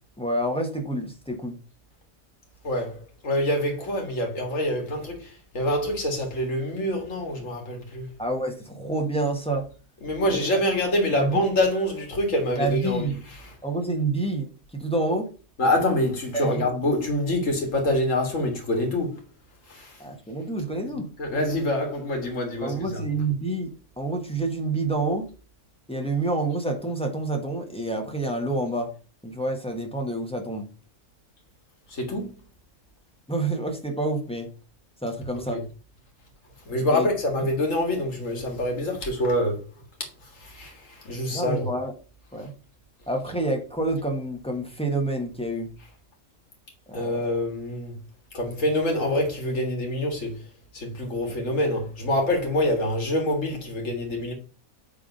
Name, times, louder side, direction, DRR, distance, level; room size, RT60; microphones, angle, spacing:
voice 1, 0.2-1.6 8.2-9.7 10.3-10.6 11.1-11.4 12.6-13.1 13.6-15.3 16.3-16.7 20.0-21.1 22.6-25.3 25.9-28.9 29.2-30.7 33.3-34.5 35.0-35.6 36.9-37.1 41.3-41.9 42.3-42.5 43.1-45.7 46.9-47.2 51.3-51.4, right 2 dB, 5° left, 1.3 m, -28 dB
voice 2, 2.6-8.1 10.0-13.5 15.6-19.1 19.7-20.0 21.2-23.0 31.9-32.3 35.3-35.6 36.7-39.6 40.2-41.7 46.9-48.0 48.3-50.4 50.7-54.3, left 1 dB, 60° left, 2.3 m, -26 dB
7.4 x 3.6 x 5.3 m
omnidirectional pair, 1.6 m